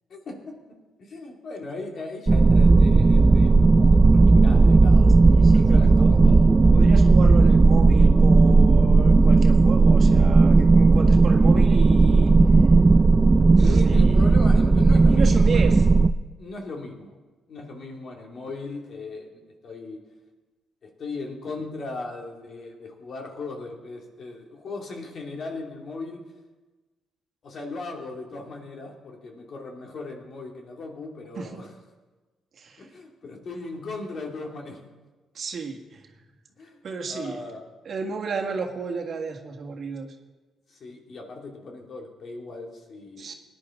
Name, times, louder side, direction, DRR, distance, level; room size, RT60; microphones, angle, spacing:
voice 1, 0.1-0.5 1.0-3.9 4.1-6.5 13.6-15.8 16.4-17.2 17.5-20.0 20.8-26.2 27.4-31.7 32.8-34.8 36.6-37.7 40.7-43.3, left 3 dB, 55° left, 1 dB, 2.5 m, -38 dB
sound 1, 2.3-16.1, right 3 dB, 25° right, 0.4 m, -15 dB
voice 2, 5.3-6.1 6.7-12.3 13.5-14.1 15.1-15.8 31.4-31.6 32.6-32.9 35.3-36.0 36.8-37.4 37.9-40.1 43.2-43.3, right 5 dB, 55° right, 2 dB, 1.7 m, -33 dB
18.5 x 10.5 x 3.8 m, 1.2 s
cardioid pair, 90°, 0 cm